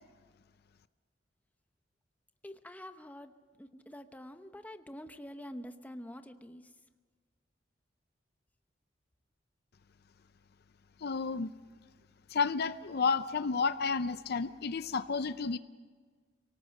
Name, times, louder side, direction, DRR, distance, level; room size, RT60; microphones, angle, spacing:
voice 1, 2.4-6.7, equal, 10° left, 8 dB, 0.9 m, -47 dB
voice 2, 11.0-11.5 12.3-15.6, left 5 dB, 55° left, 13 dB, 0.6 m, -31 dB
25.0 x 18.5 x 6.5 m, 1.5 s
head